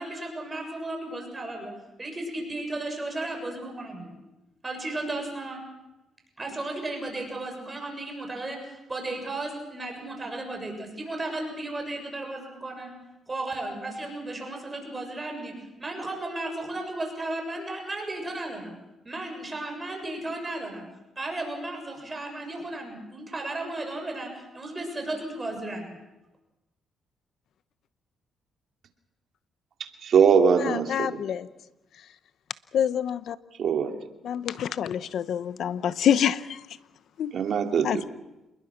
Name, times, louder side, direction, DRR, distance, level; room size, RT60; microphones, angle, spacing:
voice 1, 0.0-1.7 2.0-4.2 4.6-5.6 6.4-12.9 13.3-18.8 19.0-20.9 21.2-26.0, right 2 dB, 25° right, 7.1 m, -34 dB
voice 2, 30.0-31.2 33.6-34.0 37.3-38.0, right 6 dB, 60° right, 2.7 m, -22 dB
voice 3, 30.6-31.5 32.7-33.4 34.2-36.6 37.2-37.3 37.8-38.0, left 9 dB, 70° left, 0.9 m, -26 dB
28.0 x 21.0 x 6.0 m
cardioid pair, 90°, 0 cm